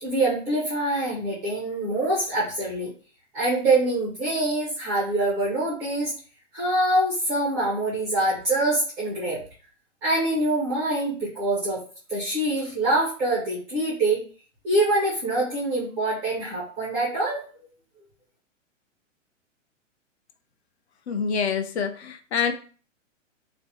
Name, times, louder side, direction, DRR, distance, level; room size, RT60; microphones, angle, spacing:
voice 1, 0.0-2.9 3.3-6.1 6.5-9.4 10.0-11.8 12.1-14.2 14.6-17.4, right 2 dB, 5° right, -8 dB, 0.3 m, -25 dB
voice 2, 21.1-22.5, left 6 dB, 55° left, 7 dB, 0.5 m, -26 dB
3.3 x 2.0 x 2.7 m, 0.39 s
figure-of-eight pair, 120°, 38 cm